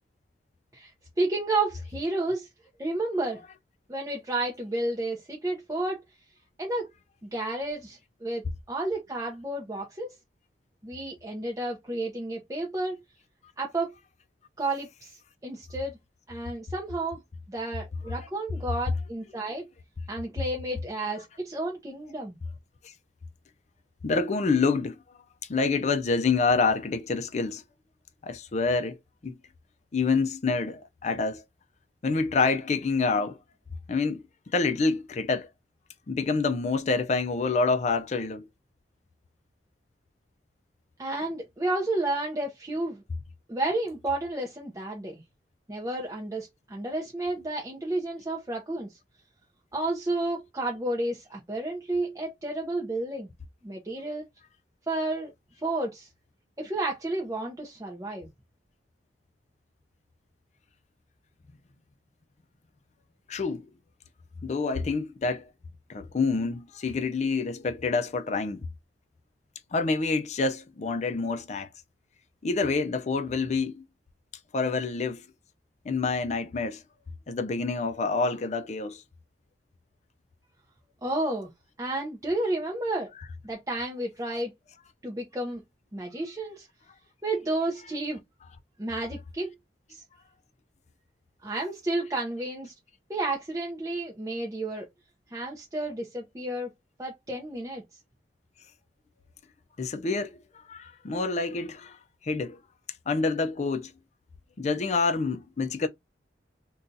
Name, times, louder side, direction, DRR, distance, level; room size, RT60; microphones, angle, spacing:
voice 1, 1.2-2.5 2.8-3.4 3.9-6.0 6.6-6.9 7.2-10.1 10.8-13.0 13.6-13.9 14.6-16.0 16.3-17.2 17.5-19.7 20.1-22.4 41.0-43.0 43.5-45.2 45.7-49.0 49.7-53.3 53.6-54.2 54.9-55.3 55.6-56.1 56.6-58.3 81.0-81.5 81.8-83.1 83.4-84.5 85.0-85.6 85.9-86.7 87.2-88.2 88.8-89.5 89.9-90.0 91.4-92.7 93.1-94.9 95.3-96.7 97.0-97.8, right 2 dB, 20° right, 0.6 m, -31 dB
voice 2, 24.0-25.0 25.5-27.6 28.2-29.4 29.9-31.4 32.0-33.4 33.9-34.2 34.5-35.5 36.1-38.5 63.3-63.7 64.4-65.5 65.9-68.6 69.7-71.7 72.4-73.8 74.5-75.2 75.8-76.8 77.3-79.0 99.8-102.0 102.2-102.6 103.1-103.9 104.6-105.9, left 4 dB, 40° left, 0.4 m, -27 dB
2.6 x 2.3 x 3.8 m
head